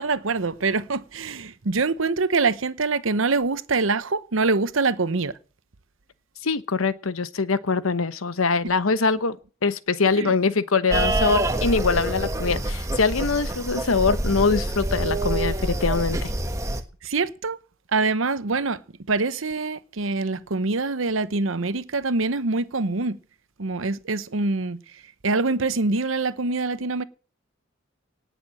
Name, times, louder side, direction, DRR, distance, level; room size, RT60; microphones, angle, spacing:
voice 1, 0.0-5.3 10.1-10.3 17.0-17.6 17.9-18.8 19.1-23.2 23.6-24.8 25.2-27.0, right 3 dB, 80° right, 0.9 m, -24 dB
voice 2, 6.4-9.4 9.6-16.3, left 4 dB, 90° left, 1.0 m, -23 dB
sound 1, 10.9-16.8, right 1 dB, 15° right, 1.4 m, -26 dB
18.0 x 6.8 x 7.6 m
head